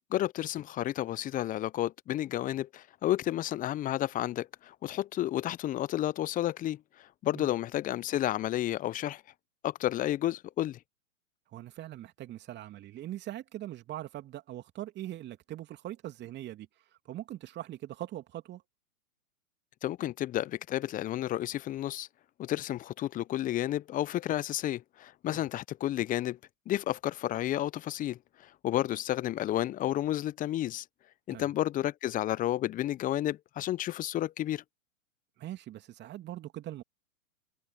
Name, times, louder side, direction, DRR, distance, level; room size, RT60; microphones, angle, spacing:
voice 1, 0.1-9.2 9.6-10.8 19.8-22.1 22.4-26.4 26.7-30.8 31.3-34.6, left 13 dB, 20° left, 1.0 m, -31 dB
voice 2, 11.5-16.7 17.0-18.6 25.3-25.4 31.3-31.5 35.4-36.8, right 13 dB, 25° right, 2.9 m, -41 dB
figure-of-eight pair, 110°, 42 cm